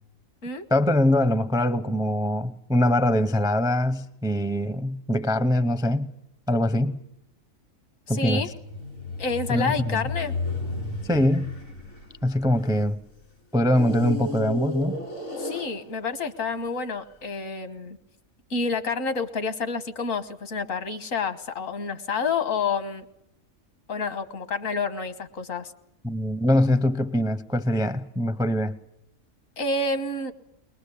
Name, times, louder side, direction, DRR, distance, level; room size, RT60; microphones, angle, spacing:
voice 1, 0.7-6.1 6.5-7.0 8.1-8.4 9.5-10.0 11.0-11.5 12.2-13.0 13.5-15.0 26.0-28.8, left 1 dB, 5° right, 0.5 m, -23 dB
voice 2, 8.1-8.5 9.2-10.4 15.4-18.0 18.5-23.0 23.9-25.7 29.6-30.3, left 4 dB, 75° left, 1.7 m, -29 dB
sound 1, 8.3-13.0 13.7-16.2 16.9-17.0, left 2 dB, 90° left, 5.6 m, -33 dB
21.5 x 20.5 x 8.4 m
omnidirectional pair, 1.4 m